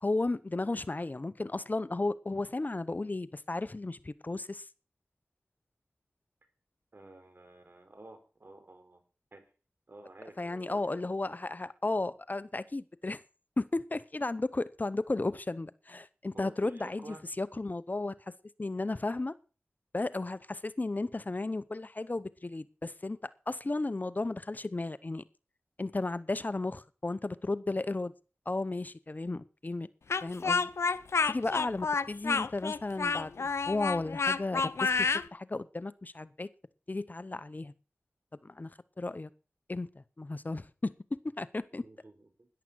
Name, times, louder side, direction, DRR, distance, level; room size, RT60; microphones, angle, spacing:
voice 1, 0.0-4.7 10.4-13.2 13.6-18.1 18.6-19.3 19.9-23.2 23.5-25.2 25.8-28.1 28.5-29.9 30.2-30.7 31.3-36.5 36.9-37.7 38.4-38.7 39.0-39.3 39.7-39.9 40.2-40.9 41.4-41.8, left 2 dB, 40° left, 16 dB, 0.7 m, -34 dB
voice 2, 6.9-9.0 9.3-9.4 9.9-10.8 16.3-17.2 41.8-42.5, right 2 dB, 55° right, 7 dB, 4.1 m, -51 dB
Speech, 30.1-35.3, left 4 dB, 80° left, 0.6 m, -29 dB
13.5 x 10.5 x 6.2 m, 0.36 s
cardioid pair, 40°, 5 cm